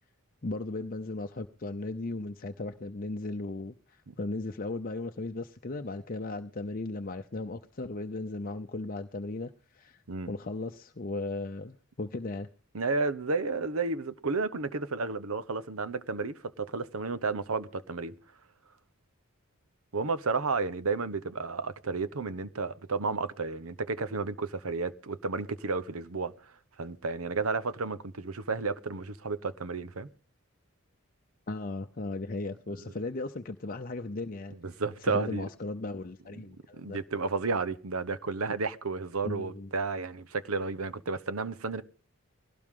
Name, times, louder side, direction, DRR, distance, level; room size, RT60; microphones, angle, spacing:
voice 1, 0.4-12.5 31.5-34.5 35.0-37.0 39.2-39.7, left 2 dB, 40° left, 0.7 m, -36 dB
voice 2, 12.7-18.1 19.9-26.3 26.8-30.1 34.6-35.4 36.8-41.8, right 4 dB, 80° right, 1.0 m, -32 dB
21.0 x 17.0 x 3.8 m
head